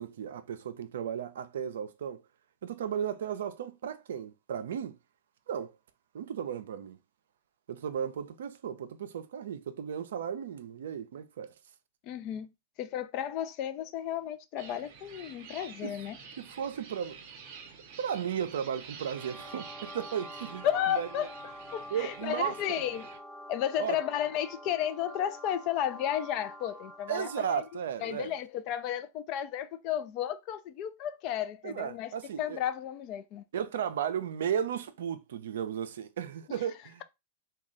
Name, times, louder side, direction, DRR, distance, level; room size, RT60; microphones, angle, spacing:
voice 1, 0.0-2.2 2.6-5.0 5.5-5.8 6.1-7.0 7.7-11.5 15.8-15.9 16.4-17.2 18.0-20.7 20.9-21.3 21.9-22.8 23.8-24.0 27.1-28.3 31.6-32.6 33.5-37.0, right 8 dB, 70° right, 0.4 m, -35 dB
voice 2, 12.0-12.5 12.8-16.2 20.6-21.3 21.7-23.1 23.5-27.6 28.0-33.4, left 10 dB, 45° left, 0.4 m, -33 dB
sound 1, 14.6-23.2, right 6 dB, 55° right, 0.8 m, -49 dB
sound 2, 19.0-27.8, equal, ahead, 0.7 m, -47 dB
3.1 x 2.3 x 3.6 m
hypercardioid pair, 100°, 0 cm